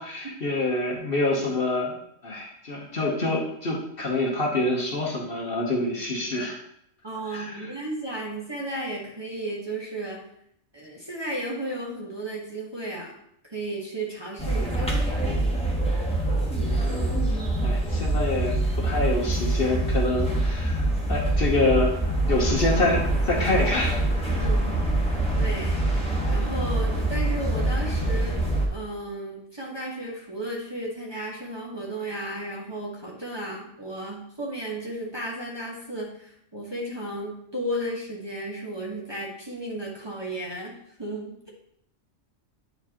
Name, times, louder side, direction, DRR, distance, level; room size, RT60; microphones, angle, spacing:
voice 1, 0.0-1.9 2.2-6.6 7.3-7.5 16.4-17.1 17.6-24.5, left 2 dB, 50° left, -1 dB, 1.1 m, -27 dB
voice 2, 7.0-10.2 10.7-13.1 13.5-15.0 24.3-24.7 25.4-25.8 26.3-28.4 28.7-40.7 41.0-41.5, right 1 dB, 20° right, -3 dB, 1.2 m, -34 dB
sound 1, 14.4-28.7, right 1 dB, 5° left, 1.2 m, -25 dB
9.1 x 4.5 x 2.9 m, 0.73 s
omnidirectional pair, 1.3 m